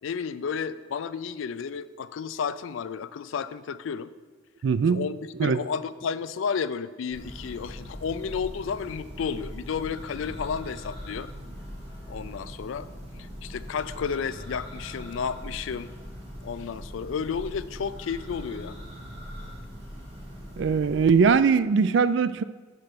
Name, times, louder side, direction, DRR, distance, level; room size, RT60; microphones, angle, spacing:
voice 1, 0.0-4.1 4.9-11.3 12.1-12.9 13.2-15.9 16.4-18.8, left 6 dB, 70° left, 14 dB, 0.4 m, -32 dB
voice 2, 4.6-5.0 5.4-5.6 20.6-22.4, right 5 dB, 60° right, 14 dB, 0.3 m, -21 dB
Church bell, 7.1-21.4, equal, 30° right, 1.8 m, -41 dB
7.7 x 5.3 x 5.9 m, 1.4 s
head